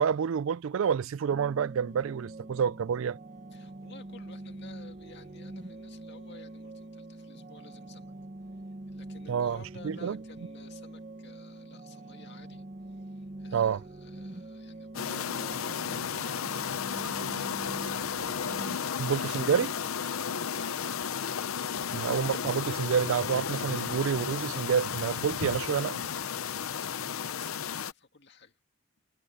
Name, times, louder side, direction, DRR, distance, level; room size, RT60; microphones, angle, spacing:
voice 1, 0.0-3.2 9.3-10.2 13.5-13.8 19.0-19.8 21.9-26.1, right 7 dB, 75° right, 0.4 m, -28 dB
sound 1, 1.3-18.8, right 2 dB, 35° right, 1.0 m, -44 dB
voice 2, 3.5-8.1 8.5-8.6 8.9-18.5 20.2-21.1 26.3-28.6, left 4 dB, 55° left, 2.2 m, -55 dB
sound 2, 14.9-27.9, left 7 dB, 85° left, 0.7 m, -33 dB
head